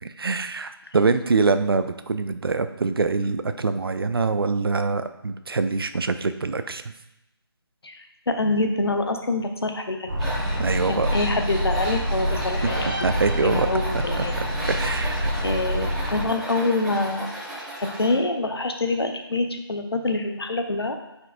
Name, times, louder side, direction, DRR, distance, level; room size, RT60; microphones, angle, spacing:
voice 1, 0.0-6.8 10.6-11.1 13.0-13.7 14.2-14.3 14.7-15.3, right 4 dB, 65° right, 10 dB, 0.5 m, -24 dB
voice 2, 7.8-10.1 10.9-12.9 13.3-14.4 15.4-17.3 17.8-21.0, left 2 dB, 75° left, 5 dB, 0.8 m, -26 dB
sound 1, 10.1-16.2, equal, 35° right, 1.4 m, -27 dB
Tools, 10.2-18.1, right 1 dB, ahead, 0.6 m, -34 dB
sound 2, 12.6-14.0, right 1 dB, 25° left, 1.6 m, -33 dB
8.8 x 4.5 x 2.5 m, 0.90 s
figure-of-eight pair, 155°, 13 cm